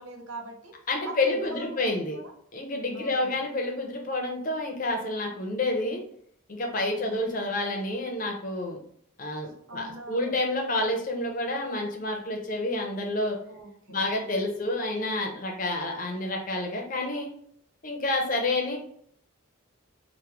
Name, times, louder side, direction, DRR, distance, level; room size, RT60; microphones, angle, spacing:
voice 1, 0.0-0.8 1.0-2.3 2.9-3.4 6.9-7.5 9.7-10.4 13.5-14.1, right 2 dB, 85° right, 3 dB, 0.7 m, -43 dB
voice 2, 0.9-2.2 2.5-6.0 6.5-8.8 9.2-13.4 13.9-17.3 17.8-18.8, left 2 dB, 40° left, 2 dB, 0.6 m, -29 dB
3.0 x 2.1 x 3.3 m, 0.65 s
head